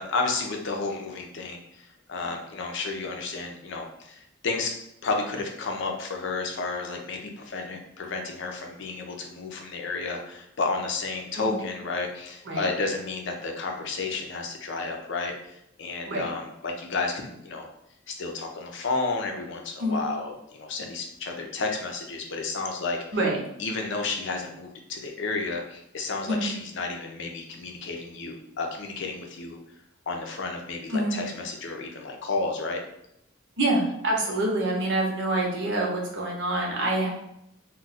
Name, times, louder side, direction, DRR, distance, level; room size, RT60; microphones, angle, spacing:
voice 1, 0.0-4.7 5.0-17.7 18.1-23.0 23.6-29.6 30.1-32.8, left 3 dB, 65° left, 2 dB, 0.5 m, -32 dB
voice 2, 33.6-37.1, right 1 dB, 65° right, -2 dB, 0.8 m, -26 dB
2.3 x 2.2 x 4.0 m, 0.79 s
head